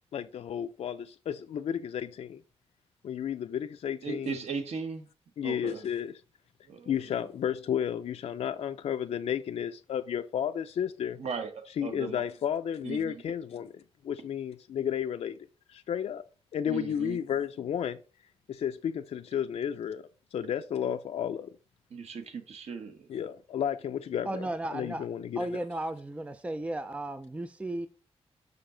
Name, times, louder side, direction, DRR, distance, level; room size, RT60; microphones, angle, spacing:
voice 1, 0.1-2.4 3.0-4.4 5.4-6.2 6.9-11.2 11.7-13.7 14.0-16.2 16.5-18.0 18.5-20.0 20.3-21.5 23.1-25.6, left 9 dB, 75° left, 0.4 m, -32 dB
voice 2, 4.0-5.1 5.4-5.8 6.7-6.9 11.2-12.2 12.8-13.2 16.7-17.2 21.9-23.0, right 5 dB, 80° right, 1.2 m, -37 dB
voice 3, 24.2-25.1 25.4-27.9, right 1 dB, 10° right, 0.4 m, -35 dB
6.7 x 6.0 x 3.8 m
wide cardioid pair, 160°, 11 cm